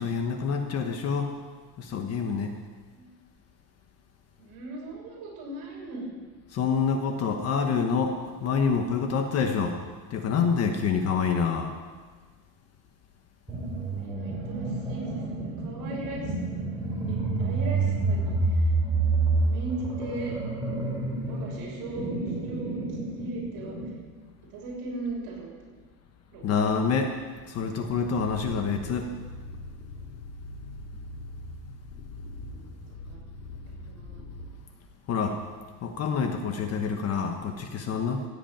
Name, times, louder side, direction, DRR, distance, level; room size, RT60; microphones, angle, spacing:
voice 1, 0.0-1.3 1.8-2.5 6.5-9.8 10.1-11.7 26.4-27.1 27.5-29.1 35.1-35.4 35.8-38.3, left 5 dB, 35° left, 5 dB, 1.2 m, -27 dB
voice 2, 4.4-6.1 13.9-16.7 17.1-18.7 19.4-20.3 21.3-22.1 22.4-22.8 23.1-23.7 24.5-25.8 26.3-26.4 30.8-30.9 32.4-32.7 33.1-33.3 33.9-34.3, right 2 dB, 50° right, -3 dB, 6.5 m, -38 dB
sound 1, 13.5-24.0, right 3 dB, 5° right, 4.5 m, -28 dB
sound 2, 27.9-34.5, left 2 dB, 85° left, 4.6 m, -42 dB
16.5 x 8.5 x 8.8 m, 1.5 s
cardioid pair, 165°, 46 cm